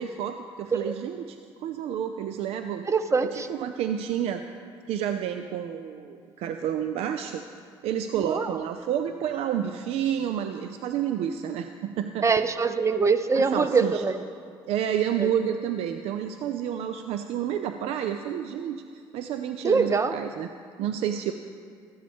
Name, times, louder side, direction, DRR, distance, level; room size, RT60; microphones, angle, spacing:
voice 1, 0.0-2.9 3.3-4.4 4.9-7.4 7.8-12.3 13.3-14.0 14.7-20.5 20.8-21.3, right 9 dB, 75° right, 8 dB, 0.5 m, -30 dB
voice 2, 2.9-3.5 8.2-8.5 12.2-14.2 15.2-15.3 19.6-20.1, right 4 dB, 30° right, 11 dB, 0.7 m, -23 dB
14.0 x 12.5 x 3.6 m, 2.2 s
supercardioid pair, 70°, 11 cm